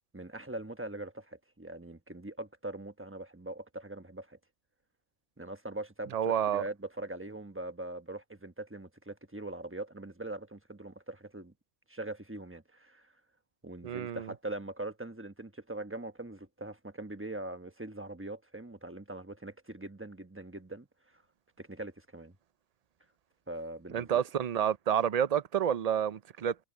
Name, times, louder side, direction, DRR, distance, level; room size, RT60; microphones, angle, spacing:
voice 1, 0.1-4.4 5.4-11.5 11.9-13.1 13.6-20.9 21.6-22.3 23.5-24.2, right 2 dB, 10° right, 1.1 m, -42 dB
voice 2, 6.1-6.6 13.8-14.3 23.9-26.5, right 9 dB, 50° right, 0.5 m, -29 dB
omnidirectional pair, 1.2 m